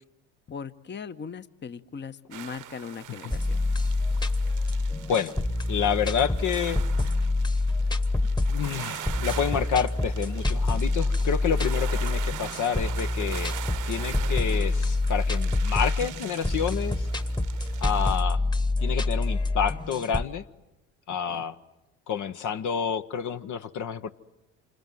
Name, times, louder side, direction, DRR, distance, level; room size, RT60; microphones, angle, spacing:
voice 1, 0.5-3.6 21.1-21.5, left 6 dB, 30° left, 12 dB, 1.1 m, -39 dB
sound 1, 2.3-18.2, right 12 dB, 55° right, 1.1 m, -42 dB
sound 2, 3.3-20.3, left 2 dB, 10° left, 1.4 m, -27 dB
voice 2, 5.7-6.8 8.5-13.5 13.8-17.1 17.8-18.4 18.8-20.4 21.1-21.6 22.1-24.1, left 7 dB, 50° left, 9 dB, 1.1 m, -29 dB
27.5 x 27.0 x 7.8 m, 0.97 s
hypercardioid pair, 60°, 38 cm